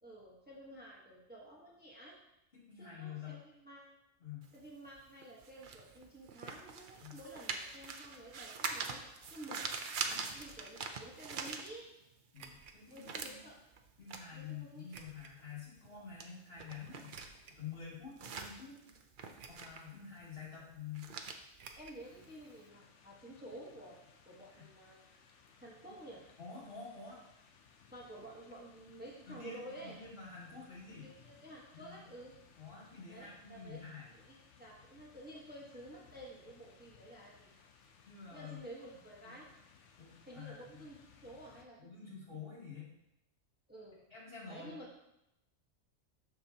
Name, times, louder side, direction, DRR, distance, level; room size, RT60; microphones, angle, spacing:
voice 1, 0.0-2.2 2.7-4.0 4.5-9.0 9.3-9.7 10.3-11.9 12.9-13.6 14.3-15.0 21.8-24.0 24.2-25.1 25.6-26.2 27.9-30.0 30.9-32.3 33.1-33.8 34.1-37.5 38.3-39.5 40.3-42.3 43.7-44.0 44.5-44.9, right 1 dB, 10° right, -4 dB, 1.1 m, -51 dB
voice 2, 2.5-3.4 4.2-4.5 7.0-7.2 10.1-10.3 12.3-13.4 14.0-17.2 17.6-18.7 19.5-21.1 24.5-24.6 26.4-27.2 29.3-31.1 31.7-32.0 32.6-34.1 38.0-38.6 39.2-39.3 40.0-40.8 41.8-42.9 44.1-44.8, left 6 dB, 50° left, -8 dB, 2.9 m, -48 dB
sound 1, 4.4-12.2 12.5-22.6, right 5 dB, 50° right, 0.7 m, -44 dB
sound 2, 10.3-10.8 12.3-12.8 13.4-13.5 14.9-15.3 17.0-17.6 18.3-18.4 19.4-19.9 20.1-20.2 21.6-22.0 22.3-22.4 22.7-22.8, right 5 dB, 75° right, 1.1 m, -54 dB
sound 3, 22.0-41.6, left 6 dB, 70° left, 1.0 m, -63 dB
13.0 x 4.7 x 2.8 m, 0.86 s
omnidirectional pair, 1.3 m